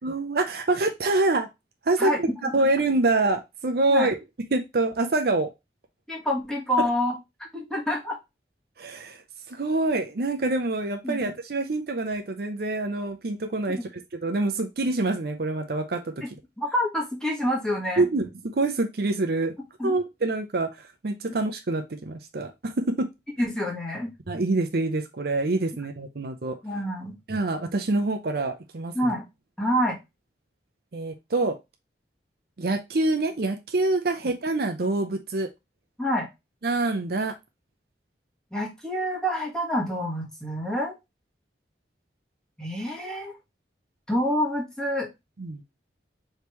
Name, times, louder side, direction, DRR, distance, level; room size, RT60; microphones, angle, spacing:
voice 1, 0.0-1.5 1.9-4.2 4.5-5.5 8.8-9.2 9.5-16.1 18.0-19.5 19.8-23.1 24.3-26.6 27.3-29.1 30.9-31.5 32.6-35.5 36.6-37.3 45.4-45.6, right 2 dB, 60° right, 6 dB, 0.6 m, -26 dB
voice 2, 2.0-2.5 3.9-4.1 6.1-7.1 7.5-8.2 11.0-11.2 13.7-13.8 16.2-16.3 16.6-18.0 19.8-20.0 23.4-24.1 26.6-27.2 28.9-29.2 29.6-30.0 36.0-36.3 38.5-40.9 42.6-43.3 44.1-45.1, equal, 5° left, -2 dB, 1.4 m, -27 dB
5.0 x 3.3 x 2.9 m, 0.22 s
head